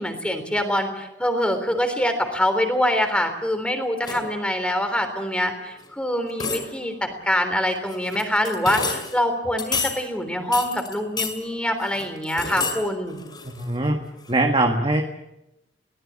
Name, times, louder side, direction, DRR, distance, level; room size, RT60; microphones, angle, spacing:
voice 1, 0.0-13.2, left 1 dB, 5° left, 7 dB, 3.5 m, -24 dB
sound 1, 4.0-4.4 5.8-5.9 6.3-6.9 7.9-9.2 9.6-10.0 10.5-11.3 11.8-12.8 13.1-13.9 14.3-14.4, left 4 dB, 25° left, 5.7 m, -29 dB
voice 2, 13.5-14.0 14.3-15.0, right 2 dB, 30° right, 3 dB, 1.8 m, -21 dB
22.5 x 18.5 x 8.8 m, 0.89 s
head